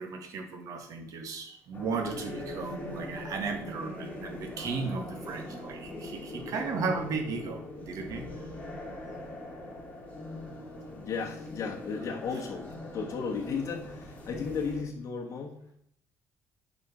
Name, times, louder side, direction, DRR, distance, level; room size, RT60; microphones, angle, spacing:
voice 1, 0.0-8.2, right 4 dB, 60° right, 4 dB, 1.8 m, -35 dB
sound 1, 1.7-14.8, left 1 dB, 20° left, 3.2 m, -41 dB
voice 2, 11.0-15.6, left 5 dB, 50° left, 0 dB, 1.3 m, -35 dB
8.2 x 5.1 x 6.0 m, 0.69 s
cardioid pair, 110°, 6 cm